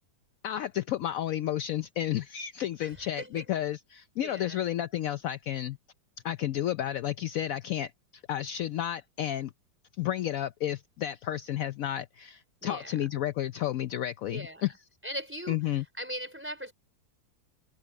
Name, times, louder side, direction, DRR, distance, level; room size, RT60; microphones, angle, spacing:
voice 1, 0.4-5.8 6.2-9.5 10.0-14.7 15.5-15.8, left 12 dB, 70° left, 0.8 m, -32 dB
voice 2, 2.8-3.5 4.2-4.6 12.6-13.1 14.3-14.7 15.0-15.6 16.0-16.7, equal, 5° right, 4.2 m, -39 dB
omnidirectional pair, 2.0 m